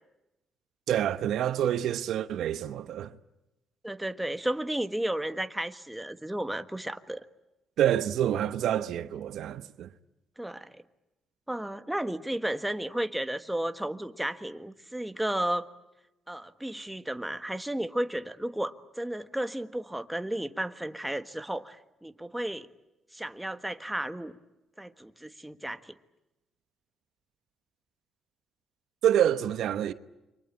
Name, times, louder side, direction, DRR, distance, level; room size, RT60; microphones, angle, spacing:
voice 1, 0.9-3.1 7.8-9.9 29.0-29.9, right 10 dB, 75° right, 1.0 m, -27 dB
voice 2, 3.8-7.2 10.4-10.8 11.5-15.7 16.3-22.7 23.1-24.4 24.8-25.9, right 1 dB, 5° right, 1.4 m, -33 dB
29.0 x 24.0 x 8.4 m
cardioid pair, 90°, 0 cm